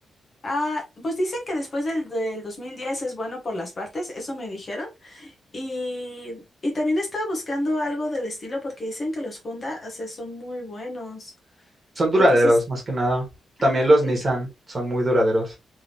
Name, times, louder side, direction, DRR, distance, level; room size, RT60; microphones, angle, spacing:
voice 1, 0.4-11.3 12.1-12.4 13.6-14.1, left 1 dB, 30° left, 1.2 m, -29 dB
voice 2, 12.0-13.2 13.6-15.5, equal, 25° right, 1.6 m, -20 dB
3.5 x 3.4 x 2.9 m
wide cardioid pair, 165°, 0 cm